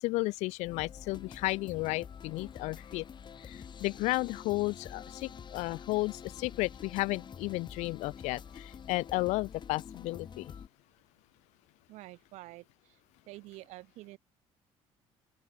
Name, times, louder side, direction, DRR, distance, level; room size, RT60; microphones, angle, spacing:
voice 1, 0.0-3.0 3.4-10.5, left 21 dB, 80° left, 0.6 m, -33 dB
sound 1, 0.6-10.7, left 7 dB, 40° left, 1.8 m, -47 dB
voice 2, 11.9-13.0 13.3-14.2, right 19 dB, 80° right, 3.4 m, -48 dB
open air
supercardioid pair, 80°, 12 cm